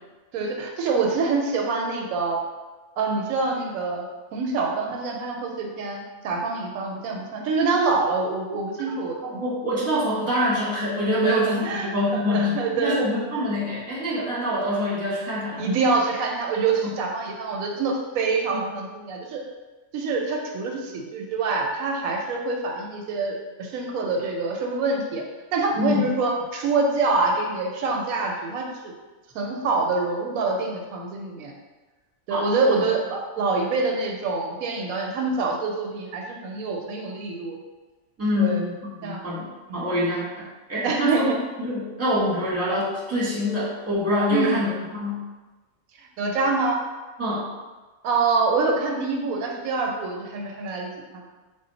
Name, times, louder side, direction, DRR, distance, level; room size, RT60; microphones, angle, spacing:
voice 1, 0.3-2.4 3.0-9.2 11.2-13.0 15.6-19.4 19.9-25.2 25.5-28.9 29.3-31.5 32.3-37.6 38.4-38.6 39.0-39.2 39.7-39.8 40.8-41.4 44.3-44.6 46.2-46.8 48.0-51.2, right 3 dB, 85° right, 1 dB, 1.0 m, -25 dB
voice 2, 9.2-15.6 16.8-16.9 25.7-26.1 32.3-32.5 38.2-40.3 40.7-41.3 41.6-45.2 47.2-47.4, left 1 dB, 10° right, -7 dB, 0.9 m, -25 dB
3.7 x 2.1 x 3.9 m, 1.2 s
omnidirectional pair, 1.4 m